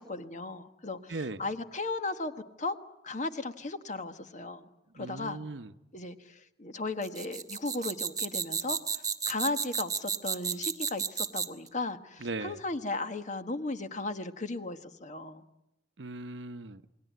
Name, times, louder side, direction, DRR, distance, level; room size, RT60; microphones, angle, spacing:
voice 1, 0.0-2.3 2.6-2.7 3.0-4.7 4.9-5.4 5.9-8.8 9.2-15.4, left 2 dB, 45° left, 1.4 m, -36 dB
voice 2, 1.1-1.4 5.0-5.7 12.2-12.6 16.0-16.8, right 3 dB, 85° right, 1.0 m, -38 dB
sound 1, 7.0-11.7, right 6 dB, 20° right, 1.3 m, -32 dB
28.5 x 20.5 x 9.3 m
head